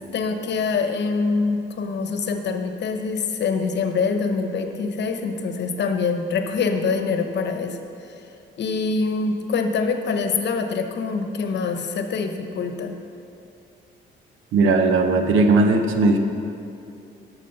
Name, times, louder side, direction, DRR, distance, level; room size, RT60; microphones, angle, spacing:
voice 1, 0.1-8.2 8.6-13.0, left 4 dB, 60° left, 6 dB, 1.0 m, -25 dB
voice 2, 14.5-16.2, right 3 dB, 85° right, 6 dB, 0.9 m, -17 dB
12.5 x 6.3 x 5.5 m, 2.7 s
cardioid pair, 90°, 20 cm